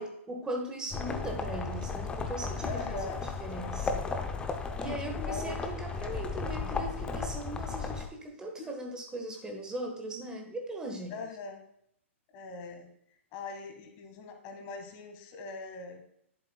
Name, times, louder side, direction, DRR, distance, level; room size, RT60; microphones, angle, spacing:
voice 1, 0.0-4.1 4.8-11.2, right 1 dB, 10° right, 2 dB, 1.3 m, -39 dB
sound 1, 0.9-8.1, left 4 dB, 15° left, 0.7 m, -35 dB
voice 2, 2.6-3.3 4.8-5.6 8.6-8.7 11.1-11.6 12.3-12.9 13.3-16.0, left 4 dB, 35° left, 5 dB, 1.4 m, -41 dB
11.0 x 7.4 x 2.3 m, 0.73 s
figure-of-eight pair, 115°, 7 cm